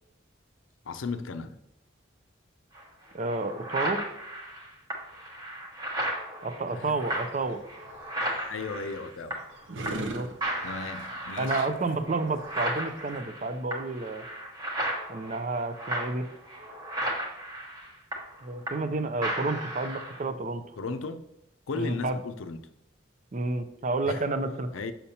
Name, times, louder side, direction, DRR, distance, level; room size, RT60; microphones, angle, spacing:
voice 1, 0.8-1.6 6.7-7.0 8.5-9.4 10.6-11.7 20.8-21.2 21.7-22.6 24.0-24.2 24.7-24.9, left 4 dB, 90° left, 0.5 m, -35 dB
sound 1, 2.7-2.8 3.3-9.6 9.8-10.1 10.4-18.9 19.2-20.2, right 1 dB, 20° right, 1.0 m, -35 dB
voice 2, 3.1-4.0 6.4-7.6 10.0-10.3 11.4-14.2 15.1-16.2 18.4-20.6 21.7-22.2 23.3-24.7, right 3 dB, 40° right, 0.5 m, -30 dB
sound 2, 7.1-13.2, right 2 dB, 80° right, 0.7 m, -42 dB
6.8 x 5.7 x 2.8 m
head